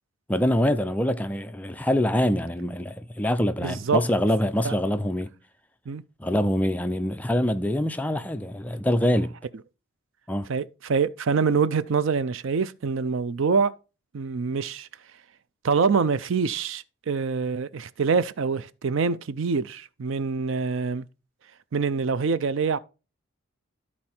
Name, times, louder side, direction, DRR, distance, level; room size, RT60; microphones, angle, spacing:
voice 1, 0.3-5.3 6.2-9.3 10.3-10.5, left 1 dB, 5° left, 0.4 m, -24 dB
voice 2, 3.6-4.0 4.6-4.7 5.9-6.0 10.5-13.7 14.1-14.9 15.6-21.1 21.7-22.8, right 5 dB, 60° right, 0.4 m, -25 dB
12.5 x 4.2 x 4.3 m
head